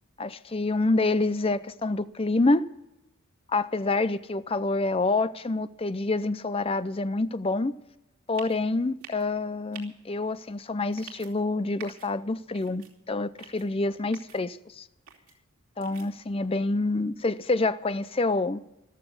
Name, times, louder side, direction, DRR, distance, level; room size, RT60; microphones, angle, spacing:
voice 1, 0.2-2.7 3.5-7.7 8.3-14.9 15.8-18.6, left 2 dB, 25° left, 0.5 m, -27 dB
sound 1, 8.3-8.6 9.0-9.2 9.7-9.8 10.9-11.3 11.8-12.1 12.5-12.9 13.4-13.6 14.1-14.4 15.1-15.3 15.8-16.1, right 8 dB, 85° right, 2.8 m, -46 dB
14.0 x 12.5 x 6.8 m
head